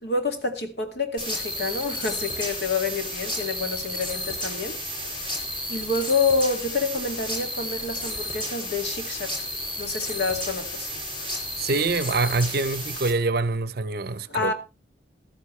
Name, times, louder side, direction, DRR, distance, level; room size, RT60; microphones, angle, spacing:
voice 1, 0.0-4.8 5.7-9.3 9.8-10.9 14.3-14.5, left 4 dB, 60° left, 2.2 m, -28 dB
sound 1, 1.2-13.1, equal, 25° left, 4.9 m, -32 dB
voice 2, 11.6-14.5, right 3 dB, 55° right, 0.7 m, -25 dB
14.5 x 13.0 x 3.2 m
head